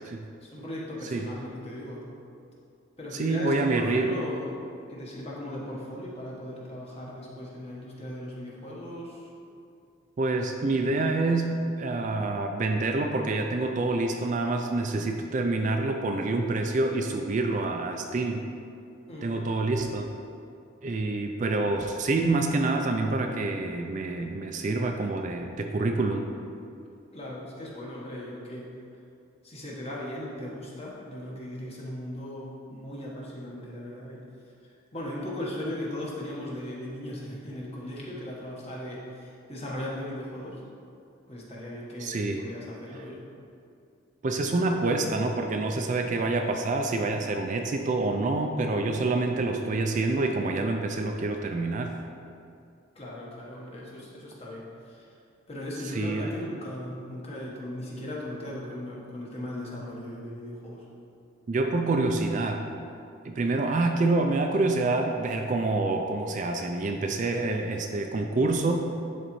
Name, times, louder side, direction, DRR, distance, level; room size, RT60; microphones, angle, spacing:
voice 1, 0.4-2.0 3.0-4.5 4.9-9.3 19.1-19.5 27.1-28.7 29.4-34.2 34.7-40.6 41.3-43.2 52.9-55.1 55.5-60.8 63.4-63.6, left 1 dB, 30° left, -5 dB, 1.2 m, -38 dB
voice 2, 3.1-4.3 10.2-18.4 19.2-20.1 20.8-26.3 42.0-42.4 44.2-51.9 55.9-56.3 61.5-62.6 63.2-68.7, right 2 dB, 40° right, 4 dB, 0.4 m, -27 dB
11.0 x 3.9 x 3.1 m, 2.5 s
head